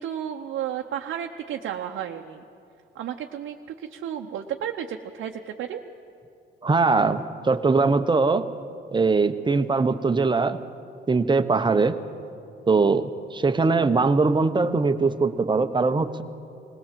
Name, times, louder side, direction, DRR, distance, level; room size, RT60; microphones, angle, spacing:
voice 1, 0.0-2.4 2.9-5.8, right 9 dB, 75° right, 2 dB, 0.8 m, -32 dB
voice 2, 6.6-8.5 8.9-10.6 11.1-12.0 12.7-16.2, right 4 dB, 25° right, 9 dB, 0.9 m, -21 dB
20.0 x 18.0 x 7.5 m, 2.5 s
cardioid pair, 90°, 20 cm